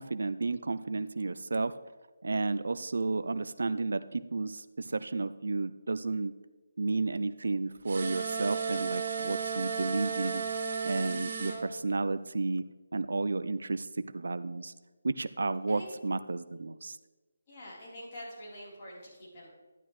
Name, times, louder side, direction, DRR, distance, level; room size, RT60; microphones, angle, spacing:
voice 1, 0.0-1.7 2.2-6.3 6.8-10.4 10.8-12.6 12.9-13.9 14.1-14.7 15.0-17.0, right 3 dB, 75° right, 13 dB, 0.4 m, -32 dB
sound 1, 7.9-11.6, right 5 dB, 50° right, 2.7 m, -34 dB
voice 2, 17.5-19.5, left 1 dB, 30° left, -6 dB, 3.8 m, -46 dB
11.5 x 9.9 x 3.2 m, 1.3 s
hypercardioid pair, 170°, 0 cm